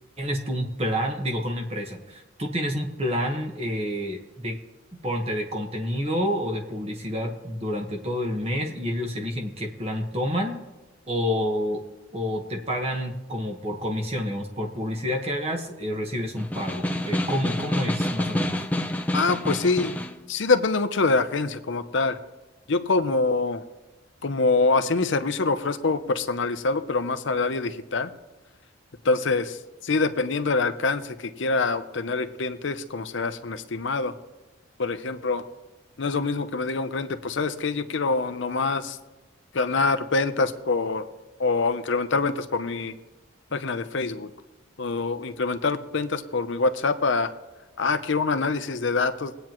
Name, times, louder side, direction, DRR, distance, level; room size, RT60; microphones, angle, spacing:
voice 1, 0.2-4.6 5.0-10.6 11.1-11.8 12.1-18.7, equal, 30° right, 2 dB, 1.3 m, -29 dB
Snare drum, 16.4-20.2, left 1 dB, 5° left, 0.5 m, -28 dB
voice 2, 19.1-20.0 20.3-22.2 22.7-23.6 24.2-28.1 29.0-34.1 34.8-35.5 36.0-39.0 39.5-41.0 41.4-43.0 43.5-44.3 44.8-47.3 47.8-49.3, left 3 dB, 60° left, 10 dB, 0.7 m, -25 dB
22.5 x 9.0 x 3.0 m, 1.1 s
head